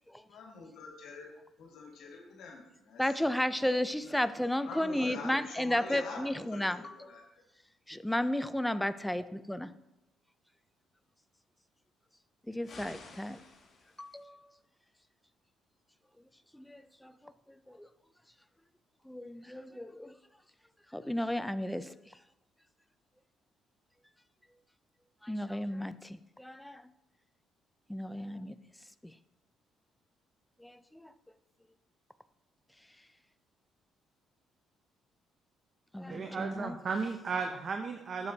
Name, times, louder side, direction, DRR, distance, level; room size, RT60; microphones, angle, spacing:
voice 1, 0.3-1.3 1.6-3.3 4.0-4.2 4.7-7.4, left 4 dB, 75° left, 1.7 m, -46 dB
voice 2, 3.0-7.1 7.9-9.7 12.5-13.4 14.0-14.4 16.5-17.3 17.7-17.9 19.0-20.1 20.9-22.2 25.2-26.8 27.9-28.6 29.0-29.1 30.6-31.1 35.9-36.8, left 1 dB, 5° left, 0.4 m, -34 dB
sound 1, 12.6-14.2, left 4 dB, 45° left, 2.0 m, -52 dB
voice 3, 36.1-38.3, right 5 dB, 45° right, 0.6 m, -35 dB
9.4 x 7.0 x 2.7 m
cardioid pair, 85°, 0 cm